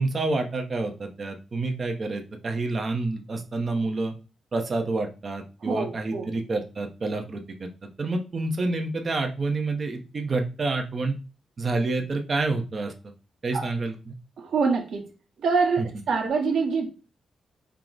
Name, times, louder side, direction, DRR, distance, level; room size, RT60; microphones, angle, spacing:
voice 1, 0.0-4.1 4.5-7.7 8.0-11.1 11.6-12.9 13.4-13.9 15.8-15.9, right 3 dB, 35° right, 5 dB, 0.6 m, -28 dB
voice 2, 5.6-6.3 13.5-13.7 14.4-15.1 15.4-16.9, right 4 dB, 70° right, 2 dB, 1.0 m, -25 dB
4.5 x 2.0 x 3.8 m, 0.33 s
wide cardioid pair, 160°, 0 cm